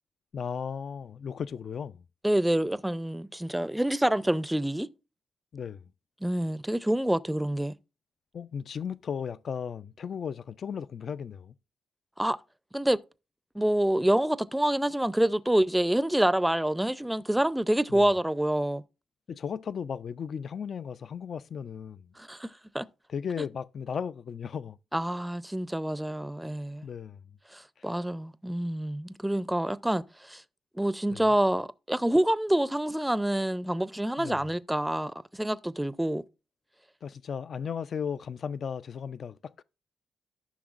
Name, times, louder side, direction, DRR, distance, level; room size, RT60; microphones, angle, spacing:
voice 1, 0.3-2.0 5.5-5.9 8.3-11.5 17.9-18.1 19.3-22.1 23.1-24.8 26.8-27.2 27.8-27.9 31.1-31.2 34.2-34.4 37.0-39.6, left 7 dB, 60° left, 0.3 m, -36 dB
voice 2, 2.2-4.9 6.2-7.7 12.2-12.4 12.7-13.0 13.5-18.8 22.2-22.9 24.9-26.9 27.5-30.4 30.8-36.2, right 1 dB, 10° right, 0.5 m, -27 dB
14.0 x 5.9 x 2.5 m
supercardioid pair, 55°, 0 cm